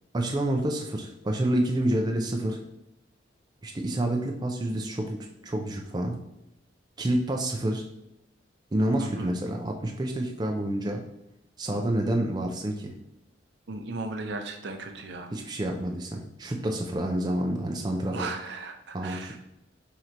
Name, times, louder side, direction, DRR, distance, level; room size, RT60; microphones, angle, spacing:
voice 1, 0.1-2.6 3.6-6.2 7.0-7.8 8.7-11.0 11.6-12.9 15.3-18.3 18.9-19.4, right 1 dB, 20° right, 2 dB, 0.4 m, -28 dB
voice 2, 13.7-15.3 18.1-19.4, right 3 dB, 65° right, 5 dB, 0.6 m, -36 dB
3.8 x 2.9 x 4.5 m, 0.88 s
head